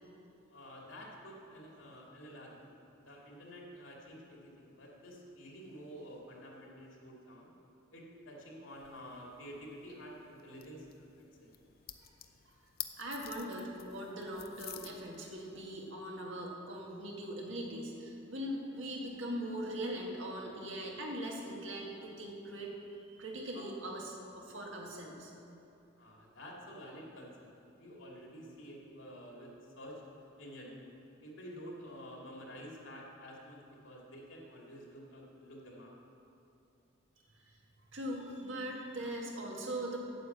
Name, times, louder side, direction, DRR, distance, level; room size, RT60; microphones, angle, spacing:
voice 1, 0.5-2.6 3.0-7.5 7.9-10.9 11.2-11.5 23.5-23.7 26.0-27.5 27.8-30.0 30.4-30.8 31.2-35.9, equal, 75° left, -2 dB, 2.5 m, -50 dB
sound 1, 8.7-15.9, left 12 dB, 50° left, 0.6 m, -51 dB
voice 2, 13.0-22.7 23.1-25.3 37.4-37.5 37.9-40.0, right 1 dB, 70° right, -1 dB, 1.9 m, -41 dB
9.1 x 8.6 x 7.3 m, 2.8 s
head